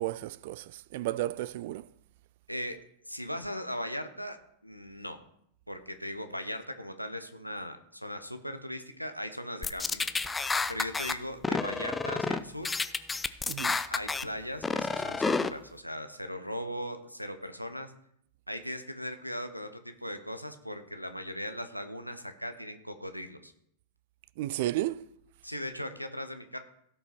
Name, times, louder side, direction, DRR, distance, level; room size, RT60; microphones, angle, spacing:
voice 1, 0.0-1.9 13.5-13.8 24.4-25.0, right 15 dB, 50° right, 0.4 m, -33 dB
voice 2, 3.1-4.4 4.6-5.2 5.7-10.3 10.7-12.7 13.9-17.9 18.5-23.5 25.4-26.6, equal, 90° left, 1.0 m, -38 dB
sound 1, 9.6-11.1 11.4-12.4 12.6-14.2 14.6-15.5, left 4 dB, 10° left, 0.5 m, -30 dB
16.5 x 5.5 x 4.3 m
figure-of-eight pair, 90°, 0 cm